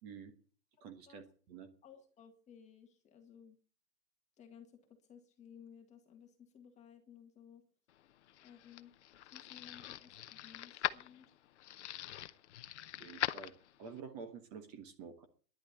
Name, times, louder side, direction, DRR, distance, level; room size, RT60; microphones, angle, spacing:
voice 1, 0.0-0.3 0.8-1.7 13.0-13.5 13.8-15.3, right 6 dB, 25° right, 7 dB, 1.3 m, -49 dB
voice 2, 1.8-3.6 4.4-7.6 8.4-8.9 9.3-11.3, left 8 dB, 15° left, 5 dB, 1.7 m, -58 dB
sound 1, 8.0-14.0, left 13 dB, 45° left, 0.7 m, -42 dB
11.0 x 9.9 x 9.3 m, 0.42 s
hypercardioid pair, 155°, 50 cm